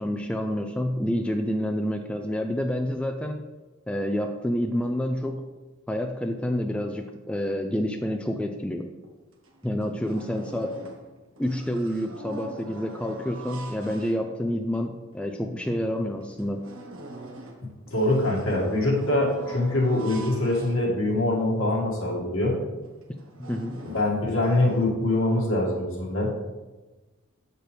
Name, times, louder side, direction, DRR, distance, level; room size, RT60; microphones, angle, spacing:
voice 1, 0.0-3.4 3.9-5.4 5.9-8.9 9.6-10.7 11.4-16.6 23.4-23.8, equal, 5° left, 4 dB, 0.3 m, -28 dB
sound 1, 9.0-9.1 9.4-11.1 11.4-14.6 15.2-15.3 15.6-15.7 16.2-21.4 21.9-22.0 22.3-22.5 23.0-24.9, right 1 dB, 75° right, 1.1 m, -43 dB
voice 2, 17.9-22.6 23.8-26.3, left 2 dB, 70° left, -4 dB, 2.1 m, -24 dB
7.8 x 6.6 x 3.4 m, 1.2 s
head